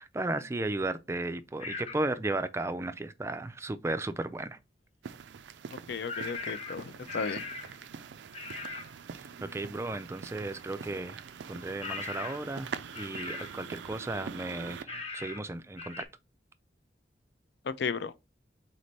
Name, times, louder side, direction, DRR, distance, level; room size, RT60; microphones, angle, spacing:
voice 1, 0.0-4.6 9.1-11.2 11.5-16.1, right 2 dB, 15° right, 0.3 m, -35 dB
sound 1, 1.6-2.0 6.1-7.8 8.3-8.9 11.8-12.5 12.9-13.6 14.9-15.5 15.8-16.0, left 3 dB, 35° left, 0.9 m, -39 dB
sound 2, 5.0-14.8, right 6 dB, 80° right, 0.4 m, -44 dB
voice 2, 5.9-7.4 17.6-18.3, left 5 dB, 65° left, 0.4 m, -34 dB
4.1 x 3.2 x 4.0 m
head